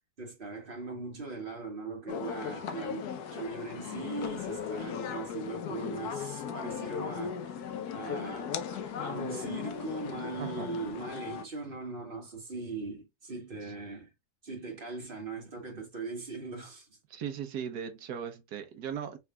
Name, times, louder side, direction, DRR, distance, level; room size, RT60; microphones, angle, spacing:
voice 1, 0.2-7.4 7.9-14.1 14.4-17.0, right 3 dB, 35° right, 1.7 m, -40 dB
sound 1, 2.1-11.4, left 7 dB, 80° left, 1.2 m, -37 dB
voice 2, 17.1-19.2, right 8 dB, 90° right, 1.5 m, -38 dB
5.6 x 3.5 x 2.2 m
omnidirectional pair, 1.6 m